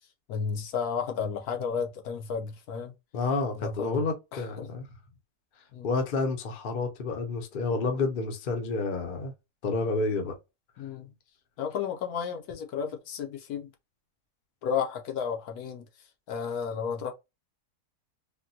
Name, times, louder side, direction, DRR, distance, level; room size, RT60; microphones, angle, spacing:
voice 1, 0.3-2.9 3.6-4.0 4.3-4.7 5.7-5.9 10.8-11.1 11.6-13.7 14.6-15.9 16.3-17.1, left 6 dB, 75° left, 1.1 m, -32 dB
voice 2, 3.1-4.8 5.8-9.3 9.6-10.3, left 3 dB, 50° left, 0.7 m, -29 dB
3.6 x 2.2 x 2.6 m
omnidirectional pair, 1.6 m